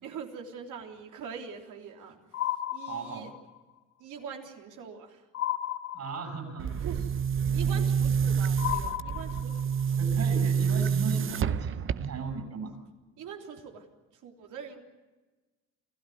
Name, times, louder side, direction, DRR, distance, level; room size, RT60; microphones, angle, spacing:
voice 1, 0.0-3.3 4.0-5.3 6.8-7.0 7.5-10.1 13.2-13.9 14.1-14.8, right 7 dB, 85° right, 2 dB, 3.5 m, -43 dB
sound 1, 2.3-3.6 5.3-6.6 8.6-9.8, left 12 dB, 60° left, 1.7 m, -34 dB
voice 2, 2.9-3.3 5.9-6.7 7.5-8.0 9.9-12.7, right 5 dB, 60° right, 8 dB, 7.6 m, -37 dB
Boom, 6.6-12.4, right 7 dB, 45° right, 0.7 m, -28 dB
27.5 x 15.0 x 9.4 m, 1.2 s
cardioid pair, 90°, 30 cm